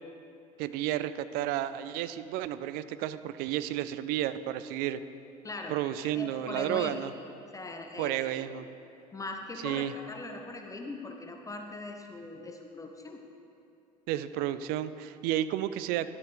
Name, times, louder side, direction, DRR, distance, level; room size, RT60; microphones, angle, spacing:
voice 1, 0.6-5.0 5.7-7.1 8.0-8.7 9.6-9.9 14.1-16.1, right 12 dB, 45° right, 14 dB, 0.4 m, -32 dB
voice 2, 5.4-7.0 7.5-8.4 9.1-13.3, left 2 dB, 15° left, 3 dB, 0.6 m, -40 dB
11.5 x 8.0 x 3.4 m, 2.8 s
figure-of-eight pair, 65°, 21 cm